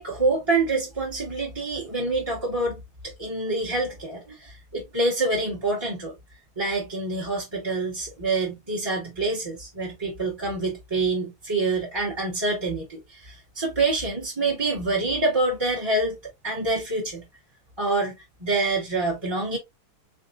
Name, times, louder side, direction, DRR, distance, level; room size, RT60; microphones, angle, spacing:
voice 1, 0.0-2.8 3.2-6.1 6.6-16.2 16.4-17.3 17.8-18.1 18.4-19.6, right 2 dB, 15° right, 1.1 m, -26 dB
3.9 x 3.6 x 2.5 m
omnidirectional pair, 2.3 m